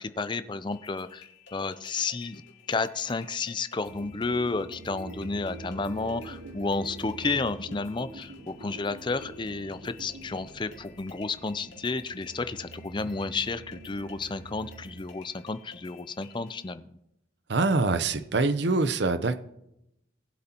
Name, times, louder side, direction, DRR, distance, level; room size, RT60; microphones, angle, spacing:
voice 1, 0.0-2.4 2.7-16.9, left 3 dB, 25° left, 12 dB, 0.5 m, -32 dB
sound 1, 0.7-16.7, left 6 dB, 85° left, 2.3 m, -54 dB
sound 2, 3.9-15.1, right 2 dB, 80° right, 1.1 m, -45 dB
voice 2, 17.5-19.4, right 3 dB, 65° right, 11 dB, 0.7 m, -24 dB
19.0 x 8.0 x 2.9 m, 0.82 s
head